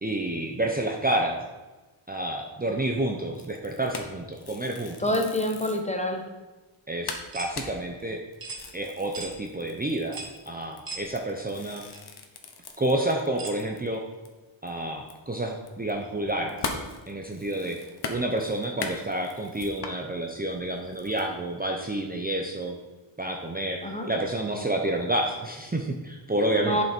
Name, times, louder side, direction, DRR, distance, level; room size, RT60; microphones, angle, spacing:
voice 1, 0.0-1.4 2.1-5.0 6.9-8.2 8.7-10.2 10.5-11.8 12.8-14.0 14.6-16.6 17.1-17.8 18.1-22.8 23.2-26.8, right 1 dB, 20° right, 1 dB, 0.7 m, -29 dB
sound 1, 3.4-5.9 6.4-6.5 6.7-6.8 7.1-14.0 14.3-14.4 14.7-20.0 20.5-21.3, left 4 dB, 55° left, 1.1 m, -39 dB
voice 2, 5.0-6.2 23.8-24.1 24.5-24.7 26.6-26.8, left 1 dB, 15° left, 3 dB, 1.0 m, -27 dB
sound 2, 7.3-7.5 8.4-8.6 9.1-9.3 10.1-10.4 10.9-11.1 11.9-12.0 13.4-13.6, right 3 dB, 45° right, 1.4 m, -37 dB
11.0 x 5.9 x 4.4 m, 1.2 s
wide cardioid pair, 150°, 46 cm